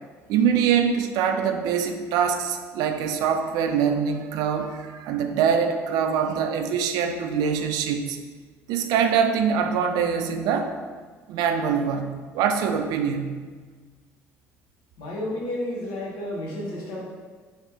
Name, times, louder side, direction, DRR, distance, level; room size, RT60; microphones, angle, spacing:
voice 1, 0.3-8.2 8.7-10.7 11.3-13.4, right 7 dB, 65° right, 6 dB, 0.3 m, -24 dB
voice 2, 15.0-17.0, left 1 dB, 70° left, -3 dB, 1.0 m, -31 dB
3.1 x 3.1 x 3.1 m, 1.5 s
hypercardioid pair, 65°, 7 cm